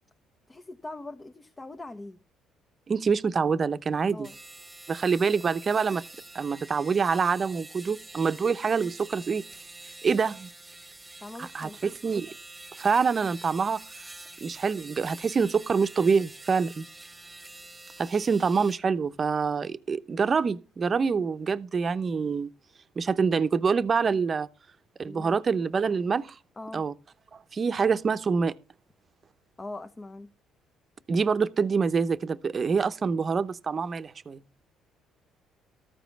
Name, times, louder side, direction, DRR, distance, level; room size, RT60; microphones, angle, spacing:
voice 1, 0.5-2.2 4.1-4.3 11.2-11.8 18.2-18.3 25.0-25.4 26.6-26.9 29.6-30.3, left 2 dB, 25° left, 0.9 m, -41 dB
voice 2, 2.9-4.3 4.9-6.0 6.3-9.4 10.0-10.5 11.5-12.3 12.8-13.8 14.4-16.9 18.0-22.5 23.0-24.5 25.0-26.3 26.7-26.9 27.3-28.5 31.1-34.4, right 5 dB, 40° right, 0.8 m, -26 dB
sound 1, 4.1-18.8, right 2 dB, 15° right, 1.3 m, -46 dB
13.5 x 5.1 x 6.8 m
supercardioid pair, 70°, 0 cm